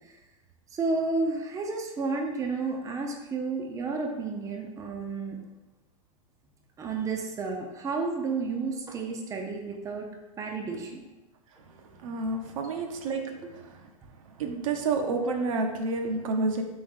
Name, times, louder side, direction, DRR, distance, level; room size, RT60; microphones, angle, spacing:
voice 1, 0.7-5.4 6.8-10.1 10.4-11.0 12.6-12.8, right 4 dB, 15° right, 1 dB, 0.5 m, -31 dB
voice 2, 12.0-13.2 14.4-16.6, right 3 dB, 65° right, 4 dB, 0.7 m, -29 dB
3.8 x 3.6 x 3.5 m, 1.1 s
hypercardioid pair, 110°, 18 cm